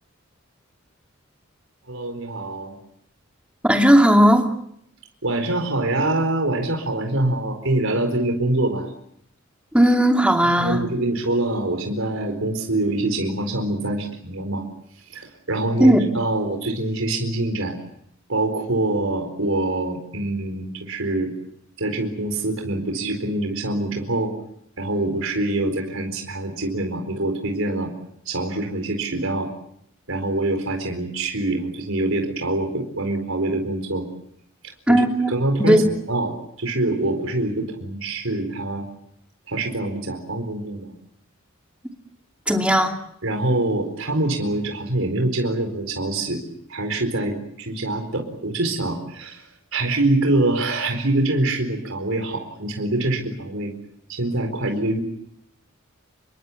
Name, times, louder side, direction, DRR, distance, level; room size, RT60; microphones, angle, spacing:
voice 1, 1.9-2.8 5.2-8.9 10.6-14.6 15.1-17.8 18.3-21.3 21.8-24.3 24.8-27.9 28.3-29.5 30.1-34.1 34.9-36.3 36.6-38.8 39.5-40.9 43.2-46.4 46.7-49.5 49.7-53.7 54.1-55.0, right 2 dB, 80° right, 4 dB, 4.4 m, -25 dB
voice 2, 3.6-4.5 9.7-10.8 15.8-16.0 34.9-35.8 42.5-43.0, equal, 5° right, 3 dB, 2.6 m, -16 dB
28.0 x 22.5 x 7.3 m, 0.73 s
head